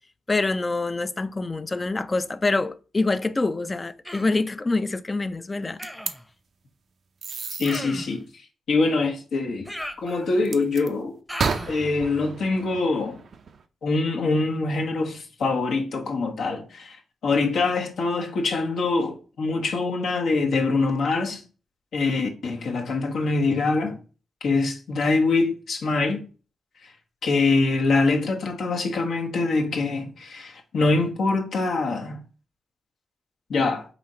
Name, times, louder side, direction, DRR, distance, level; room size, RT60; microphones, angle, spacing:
voice 1, 0.3-5.8, left 3 dB, 30° left, 0.4 m, -25 dB
Human voice, 4.0-4.4 5.8-6.2 7.6-8.2 9.6-10.5 11.3-11.8, equal, 5° left, 0.8 m, -37 dB
sound 1, 5.8-6.1 7.2-7.8 10.4-10.9 11.4-13.6, right 5 dB, 60° right, 0.4 m, -31 dB
voice 2, 7.6-8.2 8.7-9.7 10.0-11.2 11.7-13.2 13.8-17.0 17.2-21.4 21.9-24.0 24.4-26.2 27.2-32.2 33.5-33.9, left 3 dB, 70° left, 0.9 m, -24 dB
4.1 x 2.7 x 4.2 m
supercardioid pair, 50°, 0 cm